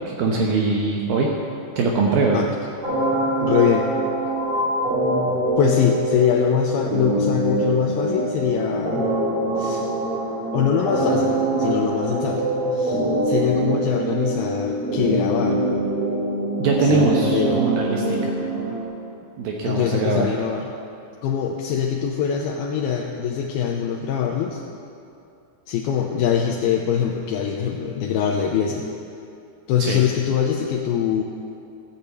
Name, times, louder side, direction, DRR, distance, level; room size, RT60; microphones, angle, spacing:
voice 1, 0.1-1.3 1.8-2.4 16.6-18.3 19.4-20.3 29.8-30.0, right 3 dB, 70° right, 0 dB, 2.5 m, -22 dB
sound 1, 2.8-18.8, right 1 dB, 35° right, 4.0 m, -24 dB
voice 2, 3.4-3.9 5.6-9.1 9.6-9.8 10.5-11.3 11.6-13.0 13.2-15.6 16.8-17.7 19.7-20.7 21.2-24.6 25.7-28.9 29.7-31.2, left 8 dB, 80° left, 0 dB, 2.5 m, -23 dB
14.0 x 8.8 x 8.1 m, 2.5 s
omnidirectional pair, 4.8 m